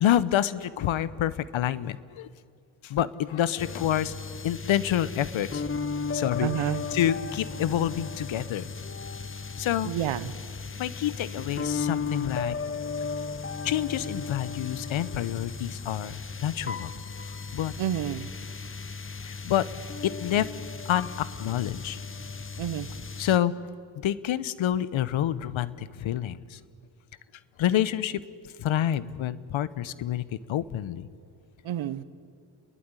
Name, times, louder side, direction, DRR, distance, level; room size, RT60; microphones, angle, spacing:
voice 1, 0.0-2.3 2.8-4.2 4.4-5.6 6.1-8.7 9.6-10.0 10.8-12.6 13.6-16.9 17.5-17.7 19.2-19.7 20.0-20.5 20.9-22.0 23.2-23.5 24.0-26.6 27.6-28.2 28.6-31.1, left 11 dB, 70° left, 18 dB, 0.9 m, -28 dB
sound 1, 3.6-23.4, left 5 dB, 25° left, 1.1 m, -35 dB
voice 2, 6.4-6.8 9.8-10.3 17.8-18.3 22.6-22.9 31.6-32.0, right 11 dB, 70° right, 16 dB, 1.0 m, -29 dB
29.5 x 11.5 x 9.7 m, 2.2 s
supercardioid pair, 55°, 49 cm